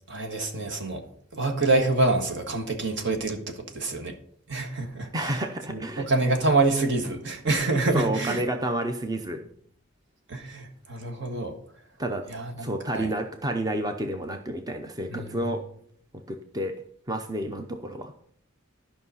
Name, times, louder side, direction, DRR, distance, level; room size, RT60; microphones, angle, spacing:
voice 1, 0.1-1.0 1.3-4.2 4.5-5.4 5.7-8.4 10.3-11.5 12.3-13.1 15.1-15.4, right 3 dB, 60° right, 4 dB, 1.6 m, -26 dB
voice 2, 5.1-6.1 7.9-9.4 12.0-12.3 12.6-15.6 16.3-16.8 17.1-18.1, right 1 dB, 20° right, 5 dB, 0.6 m, -30 dB
12.0 x 5.6 x 5.5 m, 0.63 s
head